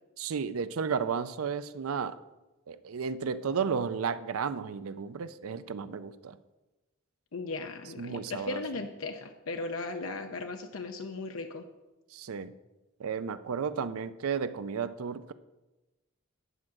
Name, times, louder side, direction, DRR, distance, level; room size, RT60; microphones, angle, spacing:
voice 1, 0.2-2.2 2.7-6.4 8.0-8.6 12.1-12.5 13.0-15.3, right 6 dB, 75° right, 14 dB, 0.4 m, -33 dB
voice 2, 7.3-11.6, left 3 dB, 70° left, 5 dB, 0.6 m, -37 dB
9.9 x 4.8 x 7.5 m, 1.1 s
head